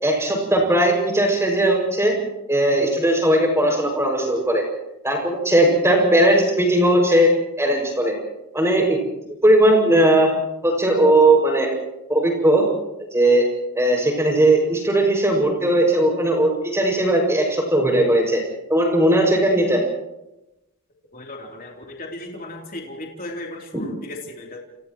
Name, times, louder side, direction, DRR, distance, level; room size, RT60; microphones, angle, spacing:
voice 1, 0.0-2.1 2.5-4.6 5.0-7.3 7.6-8.2 8.5-9.0 9.4-10.3 10.6-11.8 12.1-12.7 13.1-13.5 13.7-18.4 18.7-19.8, right 1 dB, 10° right, 1 dB, 6.3 m, -18 dB
voice 2, 21.1-24.6, left 1 dB, 40° left, -1 dB, 3.3 m, -36 dB
30.0 x 29.0 x 3.1 m, 0.93 s
head